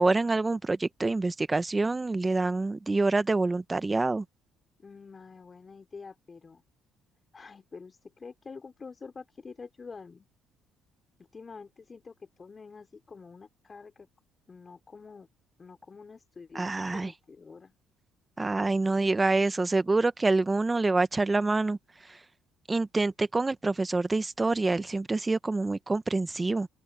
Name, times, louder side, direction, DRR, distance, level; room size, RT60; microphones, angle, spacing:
voice 1, 0.0-4.2 16.5-17.1 18.4-21.8 22.7-26.7, right 3 dB, 20° right, 1.1 m, -26 dB
voice 2, 4.8-6.6 7.3-10.3 11.3-14.1 14.5-15.3 15.6-17.7, left 4 dB, 35° left, 4.2 m, -47 dB
open air
supercardioid pair, 75°, 0 cm